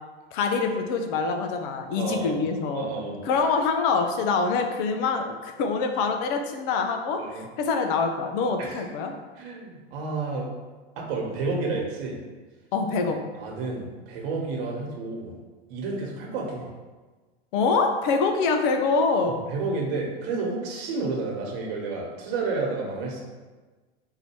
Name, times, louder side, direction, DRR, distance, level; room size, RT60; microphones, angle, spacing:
voice 1, 0.3-2.9 3.2-9.1 12.7-13.2 17.5-19.4, left 4 dB, 55° left, 5 dB, 0.7 m, -25 dB
voice 2, 2.0-2.4 2.7-3.2 7.2-7.5 8.6-8.9 9.3-10.5 11.0-12.2 13.3-15.4 15.7-16.7 19.3-23.2, right 3 dB, 60° right, -1 dB, 1.4 m, -30 dB
4.0 x 2.7 x 4.5 m, 1.3 s
hypercardioid pair, 105°, 31 cm